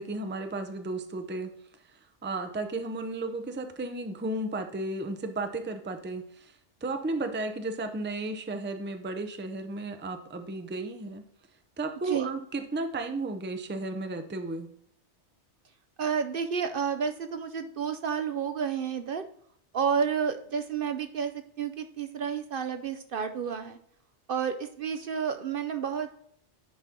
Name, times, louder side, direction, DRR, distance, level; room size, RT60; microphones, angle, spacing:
voice 1, 0.0-1.5 1.9-11.2 11.8-14.7, right 2 dB, 15° right, 7 dB, 0.5 m, -34 dB
voice 2, 16.0-19.3 19.7-23.8 24.3-26.1, right 7 dB, 60° right, 9 dB, 0.7 m, -30 dB
10.5 x 4.4 x 3.6 m, 0.66 s
omnidirectional pair, 1.2 m